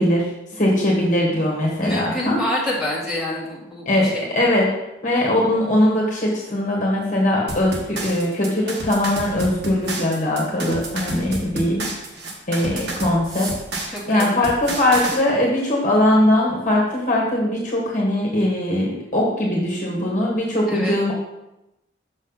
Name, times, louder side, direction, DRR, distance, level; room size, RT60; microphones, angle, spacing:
voice 1, 0.0-2.4 3.9-4.7 5.0-11.9 12.5-13.5 13.8-21.1, left 1 dB, 45° left, -3 dB, 1.5 m, -20 dB
voice 2, 1.8-4.3 13.9-14.3 20.7-21.0, left 1 dB, ahead, -10 dB, 2.2 m, -27 dB
sound 1, 7.5-15.2, right 2 dB, 70° right, 1.4 m, -30 dB
6.4 x 6.2 x 4.0 m, 0.92 s
head